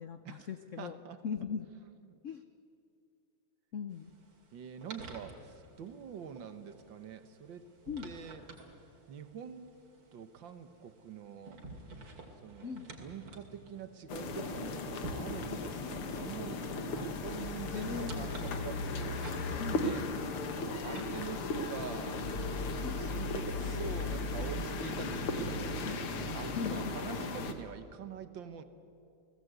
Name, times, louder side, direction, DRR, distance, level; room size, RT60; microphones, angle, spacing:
voice 1, 0.0-1.0 1.2-1.7 2.2-2.4 3.7-4.1 7.9-8.1 12.6-12.9 17.7-18.3 19.6-20.0 22.8-23.0 25.8-26.2 26.6-26.9, left 6 dB, 70° left, 9 dB, 0.7 m, -39 dB
voice 2, 0.8-1.2 2.1-2.2 4.5-7.7 8.0-8.4 9.1-9.7 10.1-11.6 12.4-14.9 15.1-19.3 19.8-20.1 20.5-22.2 23.0-25.8 26.3-28.6, right 7 dB, 65° right, 10 dB, 1.8 m, -45 dB
sound 1, 3.9-22.2, right 2 dB, 90° right, 3.5 m, -51 dB
sound 2, 14.1-27.5, left 3 dB, 90° left, 2.4 m, -36 dB
29.5 x 18.5 x 8.1 m, 2.5 s
omnidirectional pair, 2.3 m